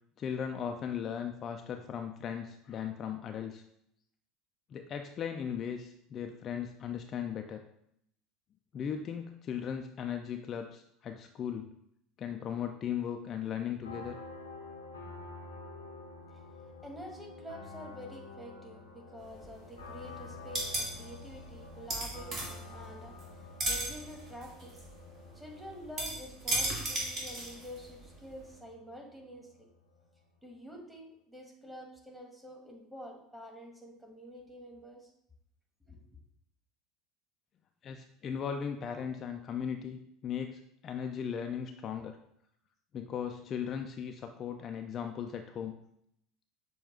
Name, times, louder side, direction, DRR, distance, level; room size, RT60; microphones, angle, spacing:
voice 1, 0.2-3.6 4.7-7.6 8.7-11.7 12.2-14.2 37.8-42.2 42.9-45.7, left 8 dB, 40° left, 5 dB, 0.3 m, -37 dB
sound 1, 13.8-30.3, left 3 dB, 90° left, 0.7 m, -49 dB
voice 2, 16.3-24.9 25.3-29.7 30.4-35.1 35.8-36.0, equal, 5° right, 0 dB, 1.2 m, -48 dB
sound 2, 19.2-20.0 20.2-23.3 23.6-28.0 28.4-28.5, right 1 dB, 40° right, 1.5 m, -35 dB
6.5 x 2.2 x 3.6 m, 0.73 s
figure-of-eight pair, 70°, 0 cm